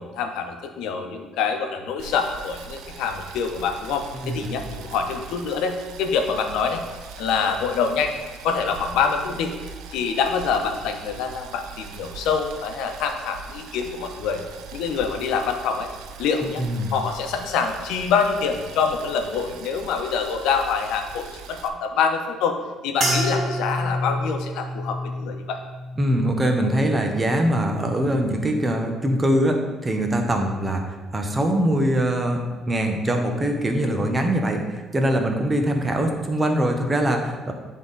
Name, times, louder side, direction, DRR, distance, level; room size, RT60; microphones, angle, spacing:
voice 1, 0.0-6.8 7.2-8.1 8.4-9.5 9.9-14.4 14.7-15.9 16.2-16.6 16.9-22.6 22.8-25.6, left 6 dB, 85° left, 5 dB, 0.8 m, -25 dB
Boiling, 2.0-21.7, right 6 dB, 85° right, 0.5 m, -41 dB
voice 2, 16.6-16.9 26.0-32.4 32.7-37.5, right 1 dB, 15° right, 3 dB, 0.7 m, -22 dB
sound 1, 23.0-27.5 27.9-28.5 29.1-29.3, equal, 45° right, 1.3 m, -29 dB
10.0 x 3.7 x 3.9 m, 1.3 s
cardioid pair, 165°, 0 cm